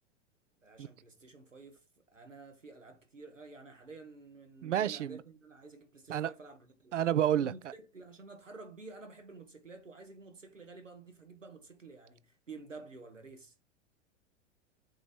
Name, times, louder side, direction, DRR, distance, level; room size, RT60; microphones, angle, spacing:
voice 1, 0.6-1.8 2.1-7.0 7.4-13.5, right 3 dB, 90° right, 1.3 m, -51 dB
voice 2, 4.6-5.2 6.1-6.3 6.9-7.5, right 10 dB, 75° right, 0.5 m, -29 dB
7.8 x 2.9 x 5.1 m
figure-of-eight pair, 95°, 37 cm